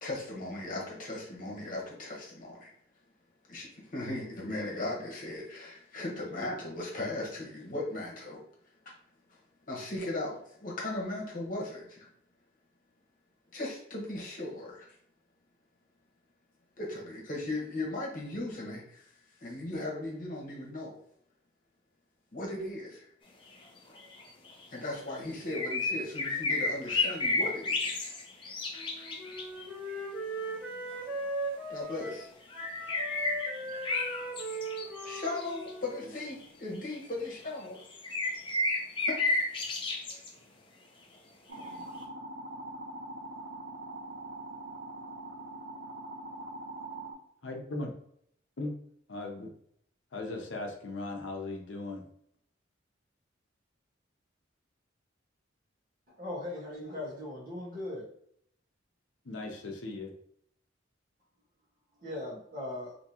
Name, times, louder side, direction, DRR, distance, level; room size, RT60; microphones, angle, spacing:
voice 1, 0.0-2.7 3.5-8.4 9.7-12.1 13.5-14.9 16.8-19.1 19.4-21.0 22.3-23.1 23.9-24.0 24.7-28.1 31.7-32.3 35.0-37.8 39.0-39.2 41.6-41.8, left 2 dB, 45° left, -3 dB, 1.1 m, -37 dB
sound 1, 24.0-24.6 25.5-29.7 32.5-35.7 36.4-36.5 37.1-37.4 37.8-40.3 41.6-41.7, left 2 dB, 25° left, 0.5 m, -32 dB
Wind instrument woodwind instrument, 28.7-32.3 32.5-36.4, right 1 dB, 10° right, 0.9 m, -39 dB
sound 2, 41.5-47.1, right 2 dB, 70° right, 0.8 m, -42 dB
voice 2, 47.4-47.9 48.6-48.7 49.1-49.5 50.1-52.1 59.2-60.1, left 2 dB, 75° left, 2 dB, 0.7 m, -38 dB
voice 3, 56.2-58.1 62.0-62.9, left 1 dB, 45° right, -5 dB, 1.4 m, -39 dB
3.5 x 2.8 x 2.8 m, 0.69 s
head